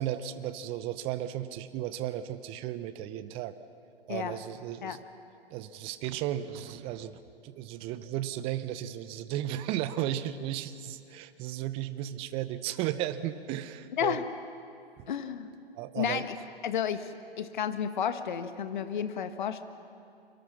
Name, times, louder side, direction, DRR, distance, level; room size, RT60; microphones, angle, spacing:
voice 1, 0.0-3.5 4.1-5.0 5.5-14.2 15.0-15.1 15.8-16.2, right 12 dB, 20° right, 13 dB, 0.7 m, -35 dB
voice 2, 15.1-15.5 15.9-16.3 16.6-19.6, left 8 dB, 50° left, 10 dB, 1.6 m, -32 dB
29.5 x 24.5 x 6.0 m, 2.6 s
figure-of-eight pair, 125°, 31 cm